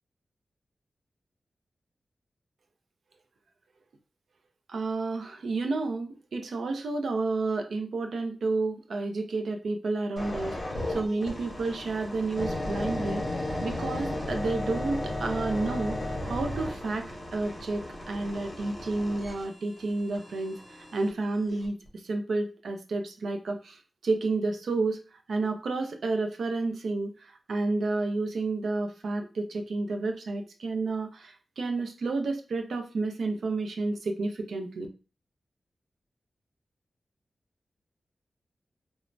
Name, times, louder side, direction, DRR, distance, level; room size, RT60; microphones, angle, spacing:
voice 1, 4.7-13.3 13.6-34.9, right 3 dB, 85° right, 5 dB, 0.4 m, -31 dB
sound 1, 10.2-21.1 21.6-21.9, left 1 dB, 35° left, 0.8 m, -35 dB
3.2 x 2.0 x 2.5 m, 0.34 s
wide cardioid pair, 120°, 0 cm